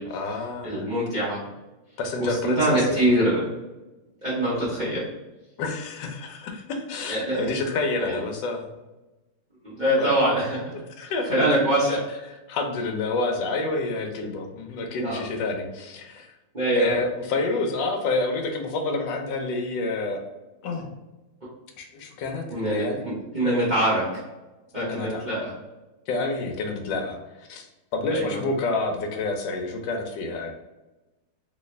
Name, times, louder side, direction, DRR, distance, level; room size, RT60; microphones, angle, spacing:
voice 1, 0.0-0.9 2.0-3.0 5.6-8.6 10.0-10.1 11.0-11.6 12.5-16.3 16.7-20.2 20.6-20.9 21.8-23.0 24.8-25.2 26.1-27.2 27.5-27.7 27.9-30.5, left 3 dB, 70° left, 3 dB, 1.2 m, -28 dB
voice 2, 0.6-1.4 2.2-3.4 4.2-5.0 7.1-7.5 8.0-8.2 9.6-10.8 11.3-12.0 14.9-15.2 16.5-17.0 22.5-24.2 24.7-25.5 28.1-28.4, right 1 dB, 45° right, -8 dB, 0.5 m, -24 dB
3.2 x 2.7 x 3.2 m, 1.1 s
omnidirectional pair, 2.4 m